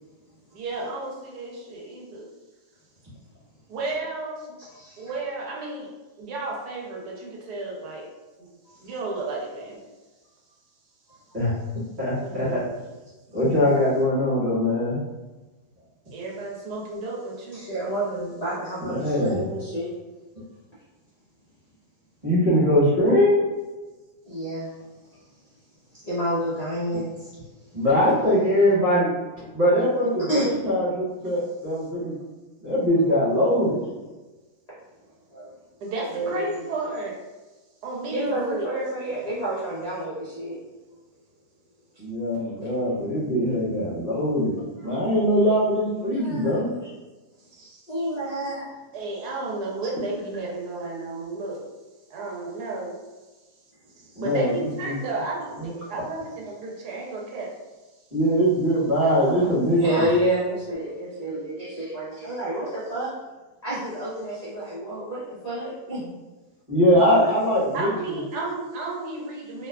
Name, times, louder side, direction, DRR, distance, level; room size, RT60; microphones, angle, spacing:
voice 1, 0.5-2.3 3.7-4.5 5.0-5.9 6.2-8.1 8.4-8.5 8.8-9.8 12.2-12.6 16.1-17.6 35.8-37.2 37.8-38.7 47.6-47.8 48.9-51.6 52.1-53.0 54.0-57.5 59.0-59.1 67.0-67.3 67.7-69.7, right 3 dB, 80° right, -3 dB, 1.2 m, -32 dB
voice 2, 4.8-5.1 8.7-8.8 17.5-19.9 24.2-24.7 26.0-27.3 30.3-30.5 35.3-35.5 36.1-36.5 38.1-40.6 46.0-46.6 47.9-48.7 59.2-63.1 63.6-66.1, right 1 dB, 50° left, -10 dB, 0.4 m, -29 dB
voice 3, 12.0-12.6 13.3-15.0 18.8-19.4 22.2-23.4 27.7-29.1 29.3-32.1 32.6-33.7 42.0-46.7 54.1-54.6 54.8-55.0 55.6-55.9 58.1-59.8 66.7-68.2, equal, 35° right, -9 dB, 1.2 m, -22 dB
2.8 x 2.2 x 2.2 m, 1.2 s
omnidirectional pair, 1.7 m